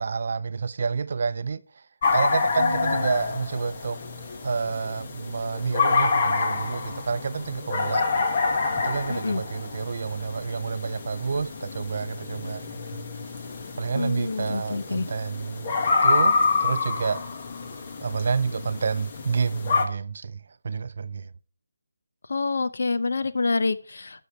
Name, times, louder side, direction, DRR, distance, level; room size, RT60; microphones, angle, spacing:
voice 1, 0.0-1.8 2.1-4.0 4.4-8.1 8.8-13.0 13.8-17.2 18.0-21.3, right 5 dB, 50° right, 0.5 m, -29 dB
sound 1, 2.0-19.8, left 4 dB, 30° left, 1.2 m, -27 dB
voice 2, 2.6-3.0 9.1-9.4 13.9-15.1 22.3-24.2, left 3 dB, 65° left, 0.8 m, -27 dB
13.0 x 6.3 x 4.4 m
hypercardioid pair, 170°, 0 cm